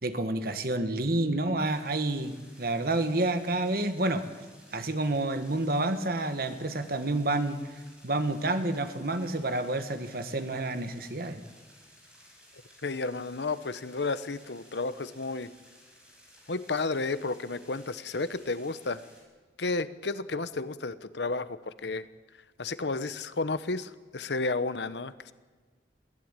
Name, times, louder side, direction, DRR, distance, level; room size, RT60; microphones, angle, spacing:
voice 1, 0.0-4.3 4.7-7.7 8.0-11.4, right 2 dB, 55° right, 9 dB, 1.6 m, -29 dB
sound 1, 1.7-19.2, equal, 5° right, 5.6 m, -57 dB
voice 2, 12.8-15.5 16.5-19.0 19.6-22.1 22.6-25.3, left 3 dB, 80° left, 14 dB, 1.0 m, -32 dB
21.5 x 15.5 x 9.0 m, 1.4 s
head